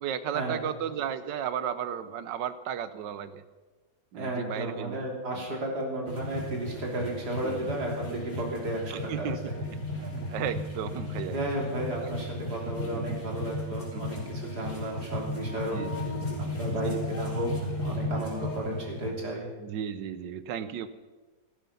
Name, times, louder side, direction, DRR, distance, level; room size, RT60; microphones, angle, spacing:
voice 1, 0.0-3.4 4.1-5.0 7.4-7.7 8.4-8.5 8.9-9.5 10.0-11.4 12.0-12.1 12.8-13.2 13.9-14.2 15.5-15.9 16.8-17.0 19.6-20.9, right 9 dB, 90° right, 13 dB, 1.5 m, -35 dB
voice 2, 4.2-9.3 10.1-10.2 11.3-15.8 16.4-17.5 17.8-19.5, right 1 dB, 65° right, 0 dB, 3.8 m, -33 dB
sound 1, 6.1-19.1, left 1 dB, 65° left, 4.1 m, -35 dB
16.5 x 13.5 x 5.7 m, 1.3 s
omnidirectional pair, 1.9 m